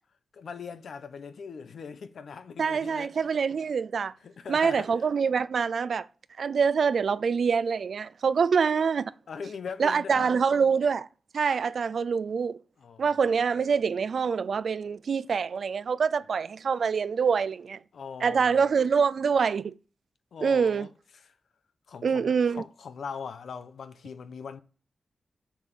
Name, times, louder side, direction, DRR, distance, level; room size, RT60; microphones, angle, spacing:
voice 1, 0.3-3.1 4.2-4.9 9.3-10.3 12.8-13.2 17.9-18.6 20.3-21.3 21.9-24.6, left 6 dB, 80° left, 1.0 m, -40 dB
voice 2, 2.6-4.1 4.5-6.1 6.4-9.1 9.8-11.1 11.3-12.6 13.0-17.8 18.2-19.7 20.4-20.9 22.0-22.6, right 6 dB, 65° right, 0.5 m, -25 dB
7.3 x 7.2 x 7.6 m
wide cardioid pair, 150°, 0 cm